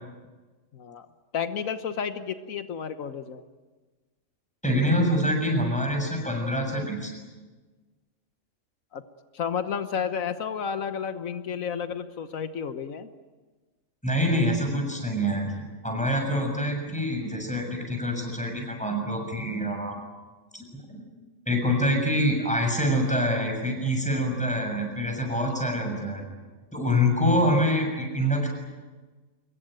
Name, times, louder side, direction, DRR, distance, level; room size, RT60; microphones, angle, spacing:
voice 1, 0.7-1.1 1.3-3.4 8.9-9.0 9.3-13.1 25.3-25.7, left 7 dB, 85° left, 10 dB, 1.5 m, -32 dB
voice 2, 4.6-7.1 14.0-15.5 15.8-20.0 20.5-20.6 20.9-21.0 21.5-26.2 26.7-28.5, equal, 5° left, 2 dB, 6.9 m, -25 dB
25.5 x 22.5 x 9.1 m, 1.3 s
omnidirectional pair, 1.4 m